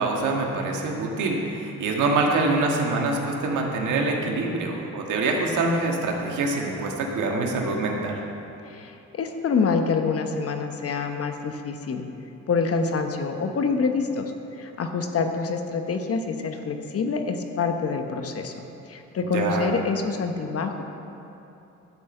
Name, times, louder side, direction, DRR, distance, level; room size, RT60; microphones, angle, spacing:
voice 1, 0.0-8.2 19.3-19.7, right 3 dB, 80° right, 0 dB, 1.6 m, -25 dB
voice 2, 8.6-12.0 12.5-20.8, left 4 dB, 50° left, 5 dB, 1.0 m, -26 dB
12.0 x 6.2 x 7.8 m, 2.8 s
cardioid pair, 90°, 30 cm